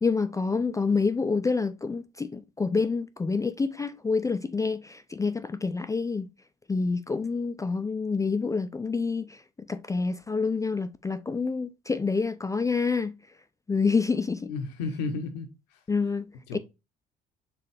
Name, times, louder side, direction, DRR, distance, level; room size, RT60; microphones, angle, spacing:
voice 1, 0.0-6.3 6.7-9.4 9.7-13.1 13.7-14.5 15.9-16.3 16.5-16.6, left 4 dB, 15° left, 0.3 m, -27 dB
voice 2, 14.5-15.8 16.5-16.6, left 4 dB, 85° left, 0.8 m, -33 dB
4.6 x 3.4 x 3.3 m
hypercardioid pair, 60°, 20 cm